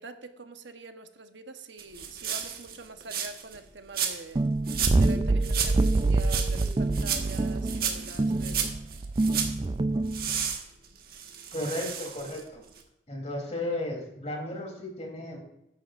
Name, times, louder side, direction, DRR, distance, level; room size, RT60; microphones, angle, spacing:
voice 1, 0.0-4.4 4.9-8.8, right 3 dB, 85° right, 7 dB, 1.1 m, -44 dB
sound 1, 1.8-3.6 3.9-4.4 4.7-5.2 5.4-9.6 10.1-12.5 12.8-12.9, right 8 dB, 55° right, 1.6 m, -33 dB
sound 2, 4.4-10.5, right 2 dB, 25° right, 0.3 m, -26 dB
voice 2, 11.5-12.6 13.1-15.4, left 1 dB, 40° left, 1 dB, 3.3 m, -34 dB
14.0 x 11.0 x 2.6 m, 0.84 s
head